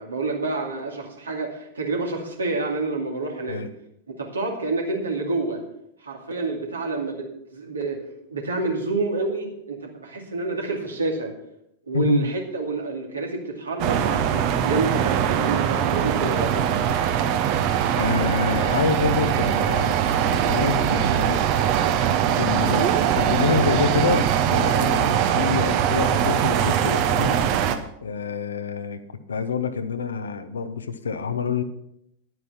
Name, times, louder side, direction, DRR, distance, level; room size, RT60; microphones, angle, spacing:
voice 1, 0.0-3.6 4.1-5.6 6.0-7.3 7.5-8.0 8.3-11.3 11.9-16.6, right 3 dB, 75° right, 1 dB, 2.4 m, -28 dB
voice 2, 11.9-12.3 17.9-20.0 20.3-21.4 22.4-27.4 28.0-29.0 29.3-31.6, left 5 dB, 70° left, 10 dB, 1.0 m, -27 dB
sound 1, 13.8-27.8, right 9 dB, 45° right, 1.0 m, -22 dB
11.0 x 9.3 x 5.8 m, 0.76 s
figure-of-eight pair, 90°, 0 cm